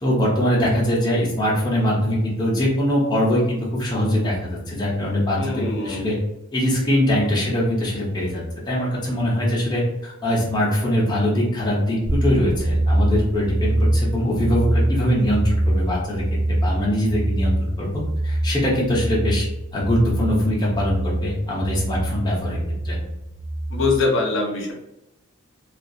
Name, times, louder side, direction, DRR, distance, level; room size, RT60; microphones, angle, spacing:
voice 1, 0.0-6.2 6.5-19.5 19.7-22.6 22.8-23.0, equal, 20° left, -5 dB, 0.6 m, -22 dB
voice 2, 5.4-6.1 23.7-24.7, left 3 dB, 60° left, 0 dB, 0.7 m, -23 dB
sound 1, 12.0-23.9, right 1 dB, 55° right, 0.6 m, -24 dB
2.4 x 2.3 x 2.6 m, 0.87 s
head